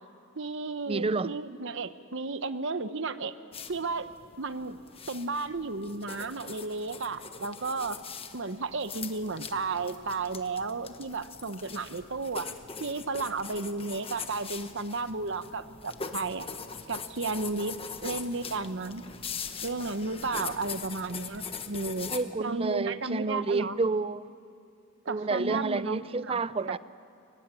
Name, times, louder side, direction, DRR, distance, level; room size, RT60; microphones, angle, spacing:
voice 1, 0.4-3.3 3.7-4.1 4.4-4.8 5.1-8.0 8.3-12.5 12.8-16.5 16.9-19.0 19.6-22.1 22.4-23.8 25.0-26.4, right 3 dB, 65° right, 1.0 m, -33 dB
voice 2, 0.9-1.3 22.1-24.3 25.1-26.8, right 3 dB, 30° right, 0.5 m, -29 dB
sound 1, 3.5-22.2, left 5 dB, 30° left, 1.2 m, -42 dB
24.0 x 22.5 x 9.9 m
head